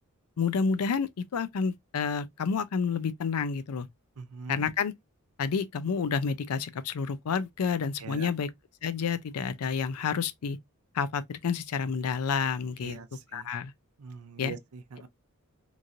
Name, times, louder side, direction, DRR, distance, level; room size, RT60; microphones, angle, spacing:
voice 1, 0.4-3.9 4.5-4.9 5.4-8.5 8.8-10.6 10.9-13.0 13.3-13.7 14.4-14.5, left 6 dB, 90° left, 0.4 m, -29 dB
voice 2, 4.2-4.7 8.0-8.3 12.8-13.5 14.0-15.1, right 5 dB, 75° right, 0.5 m, -43 dB
3.0 x 2.7 x 2.4 m
head